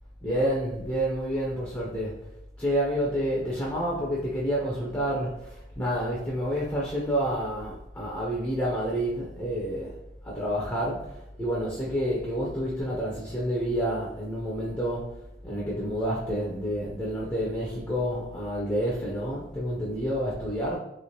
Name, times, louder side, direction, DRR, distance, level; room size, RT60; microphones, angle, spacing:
voice 1, 0.2-2.1 2.6-9.9 10.2-15.1 15.4-20.8, equal, 15° left, -5 dB, 0.6 m, -29 dB
3.1 x 3.0 x 2.9 m, 0.88 s
head